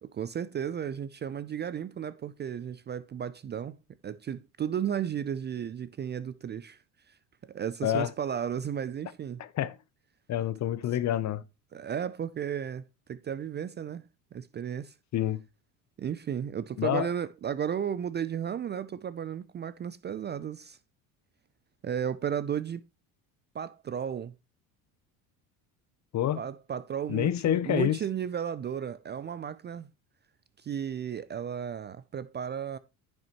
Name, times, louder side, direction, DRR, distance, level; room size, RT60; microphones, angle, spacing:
voice 1, 0.1-3.8 4.0-6.8 7.1-7.2 7.4-9.4 11.7-12.8 13.1-14.0 14.3-14.9 16.0-20.8 21.8-22.8 23.5-24.3 26.4-29.9 30.6-32.8, right 8 dB, 25° right, 0.4 m, -34 dB
voice 2, 10.3-11.4 15.1-15.4 16.8-17.1 26.1-26.4 27.1-28.0, left 11 dB, 40° left, 0.7 m, -27 dB
10.5 x 6.4 x 3.0 m
hypercardioid pair, 80°, 44 cm